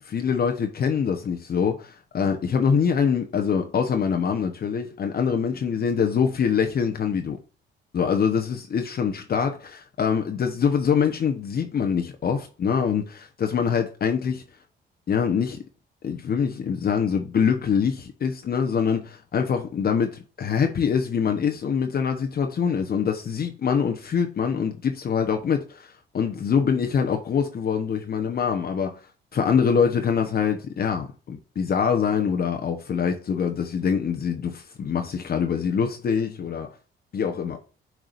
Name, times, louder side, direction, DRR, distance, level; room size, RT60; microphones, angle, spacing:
voice 1, 0.0-7.4 7.9-14.4 15.1-15.6 16.0-29.0 29.3-36.7 37.1-37.6, left 6 dB, 50° left, 1.1 m, -24 dB
9.1 x 4.8 x 2.6 m
cardioid pair, 90°, 20 cm